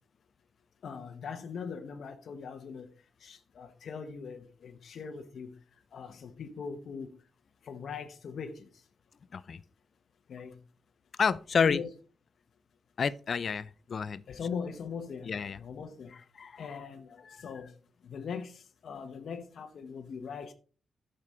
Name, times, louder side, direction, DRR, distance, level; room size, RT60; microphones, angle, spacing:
voice 1, 0.8-2.9 3.2-5.6 5.9-7.1 7.6-8.7 10.3-10.6 11.6-11.9 14.3-16.1 16.6-17.7 18.0-20.5, left 6 dB, 60° left, 1.0 m, -40 dB
voice 2, 11.2-11.8 13.0-14.2 15.3-15.6 16.4-16.8 17.3-17.5, left 6 dB, 45° left, 0.4 m, -30 dB
12.0 x 6.7 x 4.4 m
wide cardioid pair, 175°, 0 cm